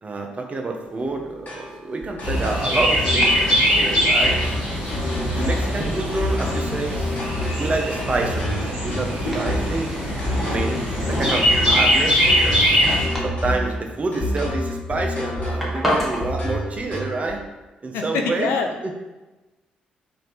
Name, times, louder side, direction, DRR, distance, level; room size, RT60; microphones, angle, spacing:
voice 1, 0.0-4.4 5.3-7.2 7.6-9.9 10.5-12.8 13.2-17.4 17.8-18.5 18.8-18.9, right 3 dB, 30° right, 2 dB, 0.6 m, -28 dB
Domestic sounds home sounds, 0.8-16.3, equal, 5° right, 1.2 m, -35 dB
sound 1, 1.5-17.3, left 1 dB, 35° left, 1.2 m, -28 dB
Chirp tweet, 2.2-13.1, equal, 85° left, 1.1 m, -22 dB
voice 2, 5.3-5.7 17.9-18.7, left 5 dB, 65° left, 3 dB, 0.4 m, -26 dB
3.3 x 2.6 x 4.0 m, 1.1 s
figure-of-eight pair, 40°, 4 cm